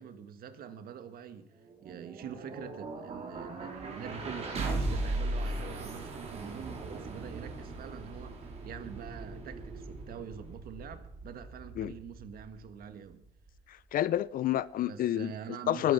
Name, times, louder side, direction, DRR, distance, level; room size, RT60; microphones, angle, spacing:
voice 1, 0.0-13.2 14.8-15.9, right 8 dB, 60° right, 1.7 m, -45 dB
sound 1, 1.6-13.6, right 2 dB, 40° right, 4.2 m, -38 dB
voice 2, 13.7-15.3 15.7-15.9, left 12 dB, 55° left, 0.6 m, -29 dB
20.5 x 9.4 x 6.0 m
cardioid pair, 110°, 17 cm